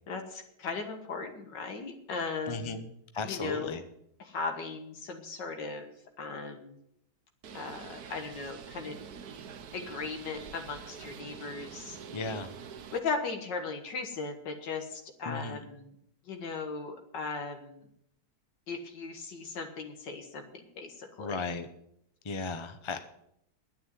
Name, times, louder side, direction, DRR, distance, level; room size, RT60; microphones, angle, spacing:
voice 1, 0.1-2.8 3.2-3.8 4.2-5.9 6.2-6.8 7.5-9.0 9.7-12.0 12.9-15.9 16.3-17.9 18.7-21.4, left 4 dB, 85° left, 5 dB, 2.1 m, -37 dB
voice 2, 2.5-2.9 3.1-3.8 12.1-12.5 15.3-15.6 21.2-21.7 22.2-23.0, left 3 dB, 30° left, 8 dB, 0.5 m, -35 dB
Bird, 7.4-13.0, right 7 dB, 65° right, 1.4 m, -46 dB
10.0 x 9.3 x 9.3 m, 0.75 s
omnidirectional pair, 1.9 m